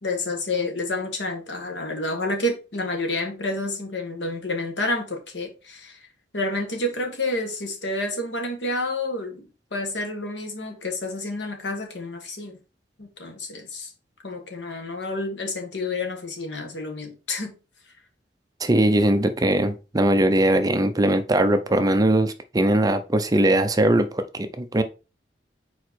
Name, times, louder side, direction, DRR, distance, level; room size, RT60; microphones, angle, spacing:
voice 1, 0.0-6.0 6.3-9.4 9.7-12.6 13.0-13.9 14.2-17.5, left 2 dB, 80° left, 1.6 m, -29 dB
voice 2, 18.6-24.8, right 1 dB, 20° right, 0.5 m, -20 dB
4.7 x 4.6 x 4.4 m
head